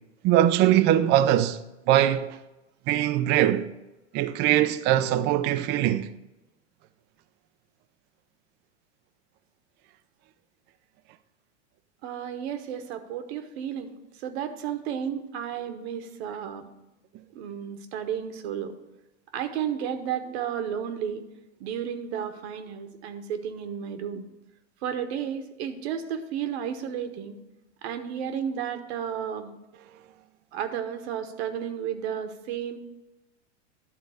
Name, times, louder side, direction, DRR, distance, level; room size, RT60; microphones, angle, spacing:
voice 1, 0.2-1.6 1.9-2.4 2.9-3.7 4.1-6.1, right 12 dB, 30° right, 0.4 m, -21 dB
voice 2, 12.0-16.7 17.3-18.7 19.3-21.2 21.6-24.2 24.8-27.4 27.8-29.5 30.5-32.8, right 8 dB, 60° right, 1.1 m, -32 dB
11.0 x 3.9 x 6.4 m
hypercardioid pair, 120°, 36 cm